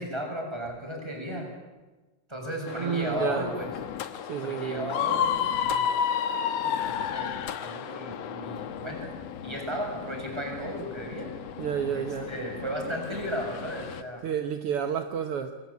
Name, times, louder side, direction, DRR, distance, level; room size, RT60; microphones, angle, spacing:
voice 1, 0.0-1.5 2.3-3.7 4.4-5.9 6.6-9.1 9.4-11.3 11.8-14.2, equal, 5° right, 7.0 m, -35 dB
sound 1, 2.7-14.0, left 9 dB, 60° left, 1.9 m, -39 dB
voice 2, 2.8-3.5 4.3-4.9 11.6-12.3 14.2-15.5, right 8 dB, 65° right, 1.5 m, -30 dB
Screaming, 4.9-7.8, left 8 dB, 80° left, 2.8 m, -27 dB
28.5 x 22.0 x 8.4 m
omnidirectional pair, 4.0 m